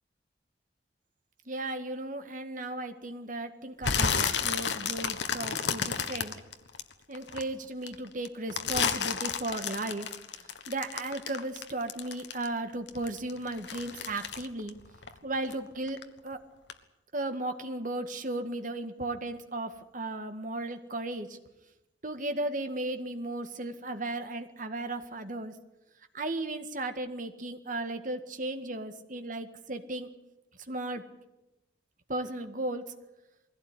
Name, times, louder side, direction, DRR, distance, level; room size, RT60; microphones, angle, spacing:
voice 1, 1.5-6.4 7.1-14.8 15.2-16.4 17.1-21.4 22.0-25.6 26.1-30.1 30.7-31.0 32.1-32.9, right 2 dB, 45° right, 7 dB, 1.8 m, -35 dB
sound 1, 3.8-7.4 7.8-12.6 12.9-15.6 15.9-16.3 16.7-16.8, left 6 dB, 70° left, 1.5 m, -31 dB
22.0 x 16.5 x 9.9 m, 0.97 s
head